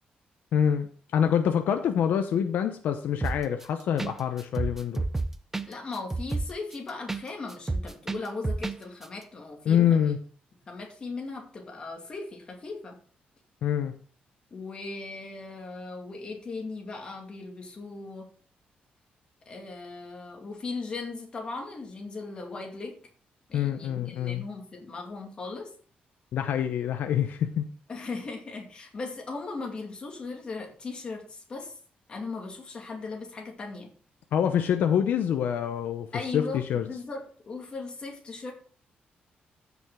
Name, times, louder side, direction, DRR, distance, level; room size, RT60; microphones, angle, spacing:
voice 1, 0.5-5.1 9.7-10.2 13.6-14.0 23.5-24.5 26.3-27.6 34.3-36.9, left 8 dB, 70° left, 7 dB, 0.8 m, -26 dB
sound 1, 3.2-3.6 4.0-4.1 4.4-7.2 7.5-8.8 9.0-9.1, right 3 dB, 10° right, 0.5 m, -30 dB
voice 2, 5.7-10.1 10.7-13.0 14.5-18.3 19.5-23.0 23.5-25.7 27.9-31.8 32.1-33.9 36.1-38.5, left 3 dB, 30° left, 1 dB, 2.4 m, -38 dB
15.0 x 5.9 x 3.7 m, 0.43 s
wide cardioid pair, 180°, 3 cm